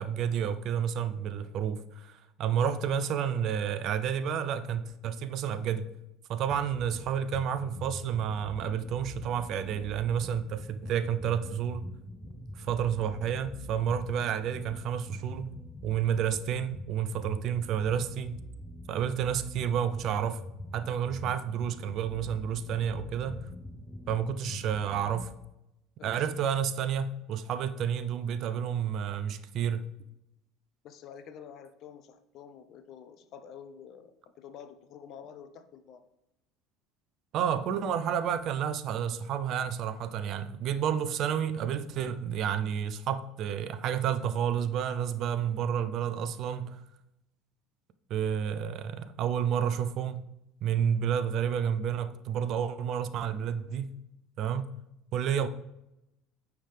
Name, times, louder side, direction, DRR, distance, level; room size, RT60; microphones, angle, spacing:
voice 1, 0.0-5.9 6.3-11.9 12.5-15.5 15.8-18.4 18.9-20.4 20.7-23.5 24.1-25.3 26.0-29.8 37.3-46.8 48.1-50.3 50.6-53.9 54.4-54.7 55.1-55.5, right 8 dB, 55° right, 0.5 m, -30 dB
sound 1, 6.5-25.3, equal, 10° left, 0.9 m, -44 dB
voice 2, 30.8-36.0, left 8 dB, 55° left, 0.6 m, -48 dB
8.9 x 3.5 x 3.3 m
supercardioid pair, 85°, 0 cm